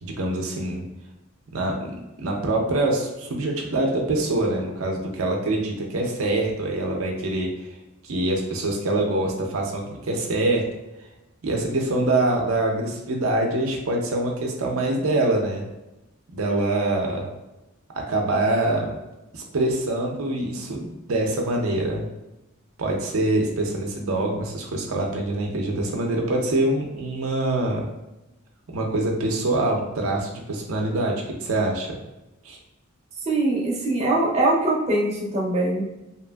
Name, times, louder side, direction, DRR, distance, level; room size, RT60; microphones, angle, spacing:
voice 1, 0.0-0.8 1.5-7.5 8.0-10.7 11.4-15.6 16.3-17.3 17.9-19.0 19.3-22.0 22.8-27.9 28.7-32.0 32.4-32.6, right 2 dB, 80° right, 0 dB, 0.5 m, -25 dB
voice 2, 33.3-35.8, right 2 dB, 30° right, -4 dB, 0.5 m, -22 dB
2.8 x 2.5 x 2.2 m, 0.95 s
head